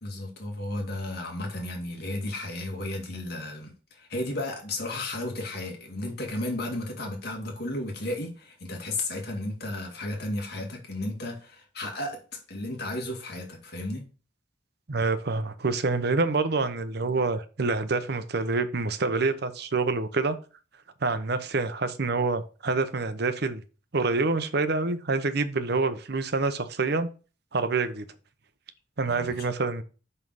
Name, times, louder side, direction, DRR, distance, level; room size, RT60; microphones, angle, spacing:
voice 1, 0.0-12.2 12.5-14.0 29.0-29.4, left 1 dB, 60° left, 2.3 m, -33 dB
voice 2, 14.9-20.4 21.0-23.6 23.9-27.1 27.5-28.1 29.0-29.8, right 3 dB, 60° right, 0.9 m, -27 dB
5.6 x 5.4 x 6.3 m
head